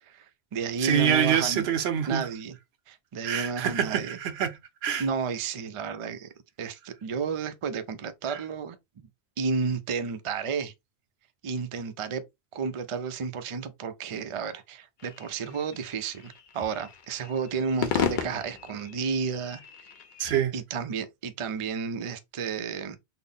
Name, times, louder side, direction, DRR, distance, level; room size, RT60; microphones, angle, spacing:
voice 1, 0.0-1.7 2.1-2.6 2.9-4.2 5.0-6.3 6.6-9.1 9.4-10.7 11.4-12.2 12.5-19.6 20.5-23.0, right 5 dB, 50° right, 0.3 m, -32 dB
voice 2, 0.8-2.3 3.2-4.5 4.8-5.1 8.3-8.4 20.2-20.5, right 9 dB, 75° right, 0.8 m, -26 dB
sound 1, 15.0-20.4, left 8 dB, 55° left, 0.7 m, -35 dB
3.9 x 2.0 x 3.5 m
omnidirectional pair, 1.1 m